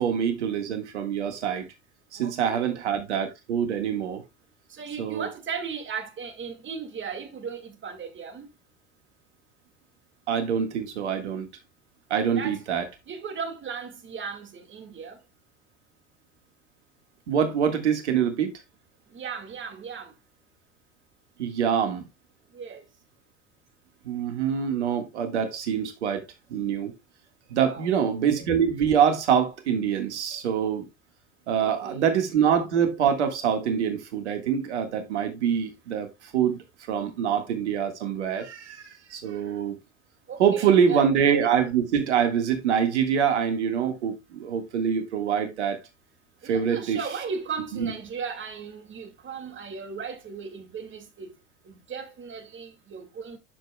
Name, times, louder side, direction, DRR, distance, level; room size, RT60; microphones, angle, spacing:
voice 1, 0.0-1.6 2.1-4.2 5.0-5.3 10.3-11.5 12.1-12.8 17.3-18.5 21.4-22.0 24.0-26.2 26.5-26.9 27.5-30.8 31.5-36.6 36.9-39.7 40.4-45.8 46.4-47.0 47.7-47.9, right 8 dB, 85° right, 1.6 m, -25 dB
voice 2, 2.2-2.7 4.7-8.5 12.3-12.6 13.1-15.2 19.1-20.1 22.5-22.8 27.6-27.9 31.6-32.0 40.3-41.0 46.4-51.3 51.7-53.4, right 6 dB, 35° right, 2.1 m, -36 dB
12.0 x 5.1 x 2.2 m
hypercardioid pair, 80°, 34 cm